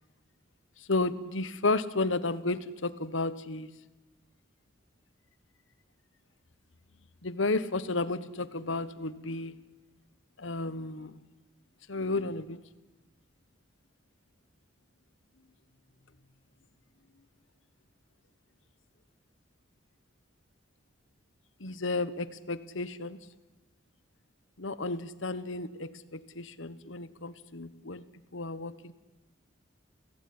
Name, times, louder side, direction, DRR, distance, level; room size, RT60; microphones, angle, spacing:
voice 1, 0.9-3.7 7.2-9.5 10.4-11.2 11.9-12.6 21.6-23.2 24.6-28.0 28.3-28.9, left 3 dB, 75° left, 15 dB, 1.4 m, -32 dB
29.0 x 17.0 x 9.7 m, 1.1 s
head